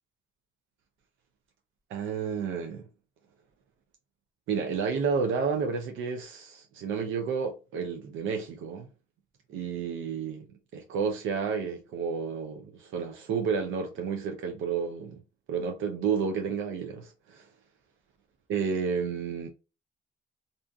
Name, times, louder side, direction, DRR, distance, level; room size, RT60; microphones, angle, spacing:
voice 1, 1.9-2.8 4.5-8.9 9.5-10.5 10.7-15.2 15.5-17.5 18.5-19.5, right 6 dB, 75° right, 0.5 m, -31 dB
2.5 x 2.5 x 2.3 m
cardioid pair, 90°, 20 cm